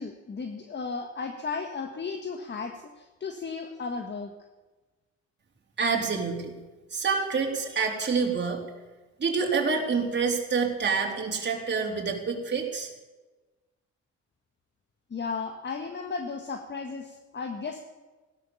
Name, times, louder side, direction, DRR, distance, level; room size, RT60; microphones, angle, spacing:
voice 1, 0.0-4.3 15.1-17.8, left 4 dB, 35° left, 5 dB, 1.6 m, -35 dB
voice 2, 5.8-6.5 6.9-8.6 9.2-12.9, right 5 dB, 35° right, 0 dB, 3.7 m, -27 dB
16.5 x 12.0 x 7.1 m, 1.2 s
cardioid pair, 90°, 30 cm